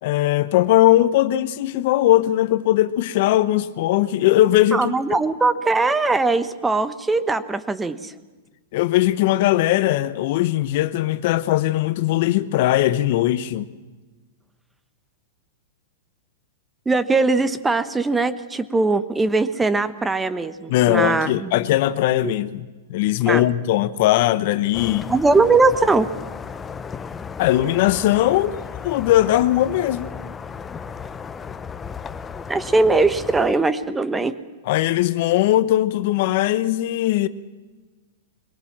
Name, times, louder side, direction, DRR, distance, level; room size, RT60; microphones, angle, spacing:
voice 1, 0.0-5.2 8.7-13.7 20.7-25.1 27.4-28.5 28.8-30.1 34.7-37.3, left 14 dB, 55° left, 0.9 m, -19 dB
voice 2, 4.7-8.1 16.9-21.5 22.2-22.3 23.3-23.5 25.1-26.1 32.5-34.3, right 3 dB, 10° right, 1.0 m, -20 dB
sound 1, 24.7-33.5, left 6 dB, 15° left, 0.8 m, -35 dB
22.5 x 18.0 x 7.4 m
hypercardioid pair, 125°, 0 cm